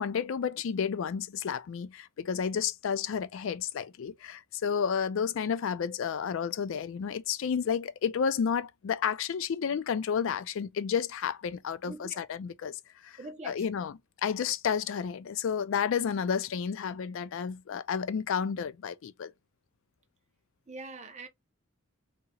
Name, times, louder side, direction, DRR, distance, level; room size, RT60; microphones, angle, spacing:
voice 1, 0.0-13.2 13.4-19.3, left 7 dB, 65° left, 0.4 m, -31 dB
voice 2, 11.9-12.2 13.2-13.5 20.7-21.3, right 2 dB, 35° right, 0.7 m, -43 dB
2.9 x 2.8 x 2.3 m
head